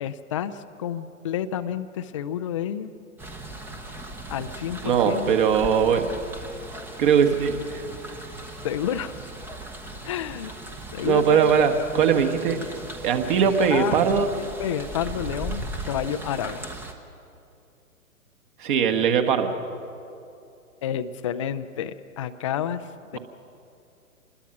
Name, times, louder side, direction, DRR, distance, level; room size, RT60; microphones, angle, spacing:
voice 1, 0.0-2.9 4.3-5.3 8.6-9.1 10.1-10.5 10.9-11.5 13.7-14.2 14.6-16.6 20.8-22.8 23.1-23.2, left 9 dB, 25° left, 10 dB, 0.5 m, -29 dB
sound 1, 3.2-16.9, right 1 dB, 5° right, 0.8 m, -38 dB
voice 2, 4.8-6.1 7.0-7.9 11.0-12.6 13.0-14.3 18.6-19.5, right 7 dB, 35° right, 6 dB, 1.6 m, -20 dB
26.0 x 21.0 x 6.0 m, 2.6 s
figure-of-eight pair, 125°, 43 cm